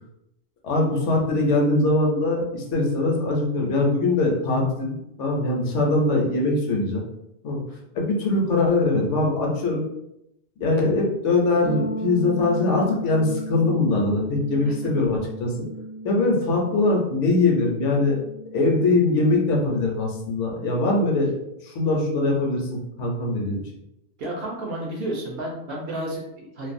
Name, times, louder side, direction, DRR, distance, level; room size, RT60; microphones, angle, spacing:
voice 1, 0.6-7.0 7.4-7.6 8.0-9.8 10.6-15.5 16.0-18.2 18.5-21.3 21.6-23.6, left 2 dB, 75° left, 0 dB, 1.0 m, -22 dB
sound 1, 11.6-21.3, right 1 dB, 25° right, 0.4 m, -36 dB
voice 2, 24.2-26.7, right 1 dB, 60° right, -2 dB, 0.7 m, -31 dB
2.5 x 2.2 x 2.5 m, 0.83 s
omnidirectional pair, 1.3 m